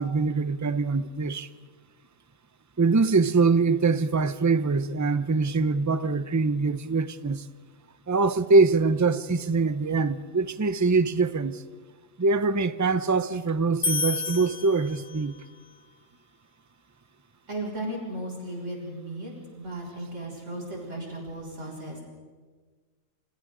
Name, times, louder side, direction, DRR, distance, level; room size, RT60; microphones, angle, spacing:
voice 1, 0.0-1.5 2.8-7.5 8.1-11.6 12.2-15.4, right 4 dB, 30° right, 0.3 m, -23 dB
sound 1, 13.8-15.5, left 3 dB, 65° left, 1.7 m, -30 dB
voice 2, 17.5-19.3 19.6-22.0, right 1 dB, 60° right, 6.4 m, -35 dB
29.5 x 26.5 x 3.9 m
omnidirectional pair, 1.4 m